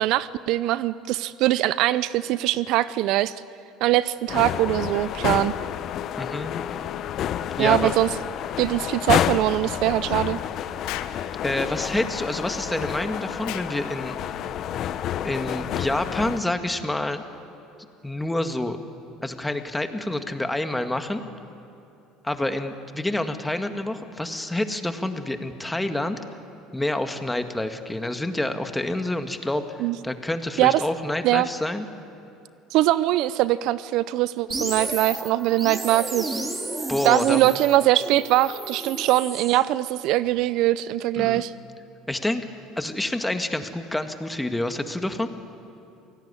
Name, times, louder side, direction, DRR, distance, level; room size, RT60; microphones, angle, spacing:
voice 1, 0.0-3.3 3.8-5.5 7.6-8.1 8.6-10.4 29.8-30.0 30.6-30.8 31.2-31.5 32.7-36.4 37.0-41.5, right 15 dB, 70° right, 17 dB, 0.6 m, -22 dB
sound 1, 4.3-16.4, left 10 dB, 55° left, 0.9 m, -29 dB
voice 2, 6.2-6.5 7.6-7.9 11.4-14.2 15.2-17.2 18.0-18.8 19.2-21.2 22.2-26.2 26.7-29.8 30.0-31.9 36.9-37.4 41.2-41.4 42.1-42.4 42.8-45.3, left 1 dB, 10° left, 7 dB, 1.9 m, -27 dB
Explosion, 10.9-11.2 13.4-13.7, left 14 dB, 75° left, 1.3 m, -34 dB
sound 2, 34.5-39.6, right 2 dB, 20° right, 3.2 m, -32 dB
28.0 x 18.0 x 9.9 m, 2.7 s
supercardioid pair, 90°, 0 cm